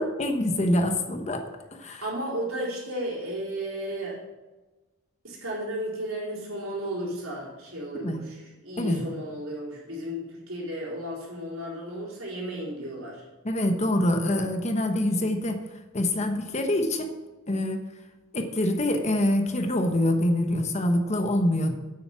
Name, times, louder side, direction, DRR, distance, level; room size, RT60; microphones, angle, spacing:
voice 1, 0.0-1.4 1.7-2.1 7.9-8.2 8.8-9.1 13.4-15.6 15.9-17.1 17.5-17.8 18.3-21.7, left 1 dB, 35° left, 5 dB, 1.1 m, -25 dB
voice 2, 2.0-4.2 5.2-13.2, equal, 80° right, -4 dB, 4.2 m, -34 dB
9.2 x 8.9 x 6.0 m, 1.1 s
head